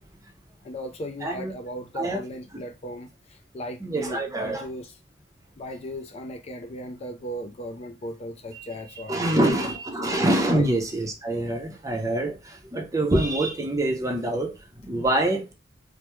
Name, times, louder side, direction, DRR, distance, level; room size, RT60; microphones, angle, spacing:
voice 1, 0.6-4.9 5.6-9.6 10.5-10.7, equal, 35° left, 0.4 m, -37 dB
voice 2, 1.2-1.5 2.0-2.2 2.5-2.6 3.8-4.7 8.5-8.7 9.1-15.5, right 1 dB, 15° right, 0.6 m, -25 dB
3.3 x 2.0 x 3.0 m
head